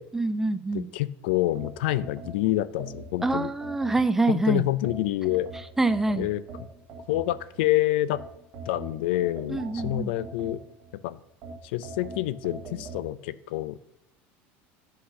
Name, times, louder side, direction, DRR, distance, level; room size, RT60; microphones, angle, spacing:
voice 1, 0.1-0.9 3.2-4.6 5.8-6.3 9.5-10.1, right 2 dB, 5° right, 12 dB, 0.3 m, -25 dB
voice 2, 0.7-3.5 4.3-5.5 6.2-6.4 7.1-8.2 8.7-10.6 10.9-11.2 11.6-13.9, left 15 dB, 85° left, 17 dB, 0.4 m, -27 dB
sound 1, 1.5-4.3 4.8-7.6 8.1-10.9 11.4-13.0, right 4 dB, 40° right, 1.7 m, -42 dB
8.5 x 3.9 x 6.4 m, 0.85 s
cardioid pair, 170°, 6 cm